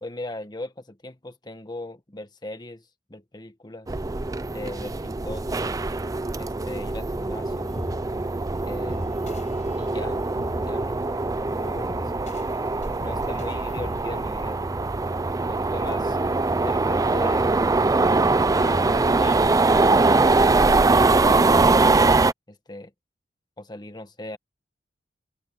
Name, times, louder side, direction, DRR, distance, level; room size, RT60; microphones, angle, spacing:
voice 1, 0.0-3.9 4.5-5.5 6.4-7.7 8.6-9.0 9.8-12.1 13.0-14.6 15.5-16.2 16.6-17.5 18.5-20.4 20.8-21.8 22.5-22.9 23.6-24.4, left 1 dB, 25° left, 1.5 m, -38 dB
sound 1, 3.9-22.3, right 3 dB, 20° right, 0.4 m, -22 dB
sound 2, 7.7-15.8, equal, 40° left, 6.7 m, -41 dB
open air
head